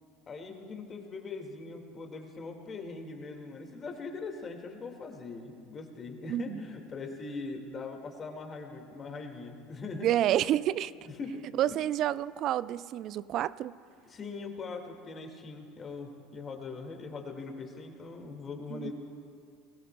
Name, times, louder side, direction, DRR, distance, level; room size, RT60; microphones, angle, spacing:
voice 1, 0.3-10.4 11.2-11.5 14.1-18.9, left 4 dB, 35° left, 1.9 m, -41 dB
voice 2, 6.3-6.6 10.0-10.9 11.6-13.7 18.7-18.9, right 12 dB, 50° right, 0.3 m, -29 dB
21.5 x 18.0 x 2.2 m
hypercardioid pair, 75°, 0 cm